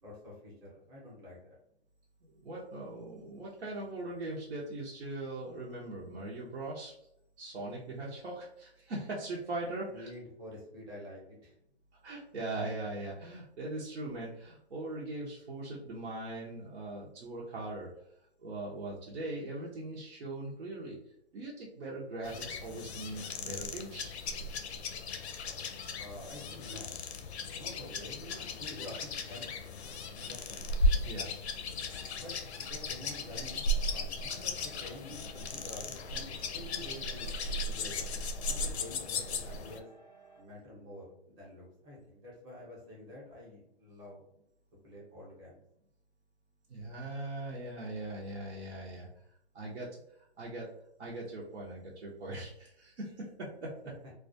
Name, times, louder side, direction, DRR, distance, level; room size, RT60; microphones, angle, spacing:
voice 1, 0.0-1.6 9.9-11.6 26.0-27.0 27.5-29.5 30.2-30.7 32.1-32.3 32.6-38.2 38.4-39.9 40.3-44.2 44.8-45.5 54.0-54.1, left 1 dB, 15° right, -5 dB, 0.7 m, -48 dB
voice 2, 2.2-6.9 7.4-10.1 12.0-17.9 18.4-21.0 21.3-24.1 31.0-31.3 46.7-49.1 49.5-49.9 50.4-50.7 51.0-53.7, right 2 dB, 85° right, -6 dB, 0.8 m, -40 dB
sound 1, 22.2-39.8, left 2 dB, 80° left, 0.5 m, -36 dB
sound 2, 31.8-40.4, right 4 dB, 25° left, 0.4 m, -58 dB
2.4 x 2.2 x 2.6 m, 0.75 s
hypercardioid pair, 145°, 32 cm